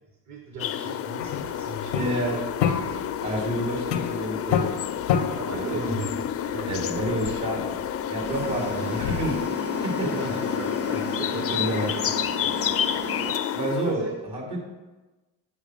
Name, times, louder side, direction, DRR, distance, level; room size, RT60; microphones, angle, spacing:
voice 1, 0.3-2.5 5.4-6.1 6.4-7.4 8.4-8.5 10.0-12.0 13.0-14.1, right 4 dB, 35° right, 2 dB, 1.1 m, -37 dB
sound 1, 0.6-13.9, left 9 dB, 30° left, 0.4 m, -30 dB
sound 2, 1.2-9.5, left 8 dB, 90° left, 0.7 m, -30 dB
voice 2, 1.9-2.4 3.2-4.7 5.5-6.0 6.7-7.7 8.1-9.4 9.7-10.1 11.5-12.0 13.5-14.1 14.3-14.6, right 1 dB, 55° right, -1 dB, 2.9 m, -29 dB
sound 3, 8.2-13.3, right 6 dB, 80° right, 0.9 m, -37 dB
7.4 x 4.9 x 6.2 m, 1.2 s
hypercardioid pair, 55°, 48 cm